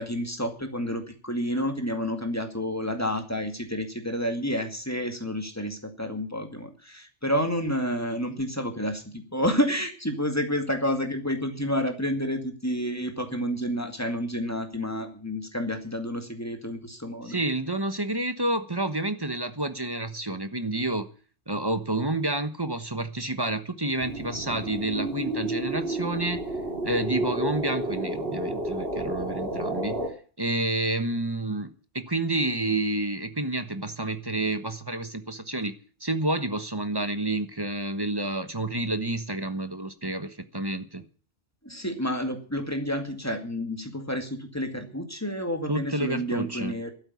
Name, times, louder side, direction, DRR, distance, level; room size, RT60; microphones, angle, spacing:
voice 1, 0.0-17.4 41.6-46.9, equal, 15° left, 2.2 m, -30 dB
voice 2, 17.2-21.1 21.5-26.4 26.8-30.0 30.4-31.7 31.9-35.7 36.0-41.0 45.7-46.8, right 2 dB, 20° right, 1.2 m, -29 dB
sound 1, 24.0-30.1, right 1 dB, 60° right, 3.4 m, -31 dB
12.5 x 9.0 x 9.7 m
omnidirectional pair, 1.2 m